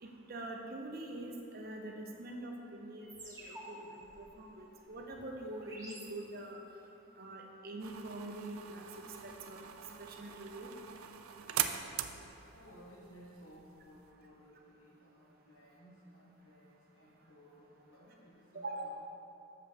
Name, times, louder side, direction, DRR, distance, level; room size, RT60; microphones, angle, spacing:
voice 1, 0.0-6.6 7.2-8.9 9.2-9.6 10.0-10.7 18.5-18.9, right 2 dB, 45° right, 2 dB, 0.6 m, -44 dB
sound 1, 3.1-6.7, right 1 dB, 15° right, 1.5 m, -52 dB
sound 2, 7.8-14.1, right 10 dB, 85° right, 0.4 m, -42 dB
voice 2, 12.5-18.9, equal, 80° left, -5 dB, 1.6 m, -58 dB
7.8 x 6.5 x 3.5 m, 2.8 s
head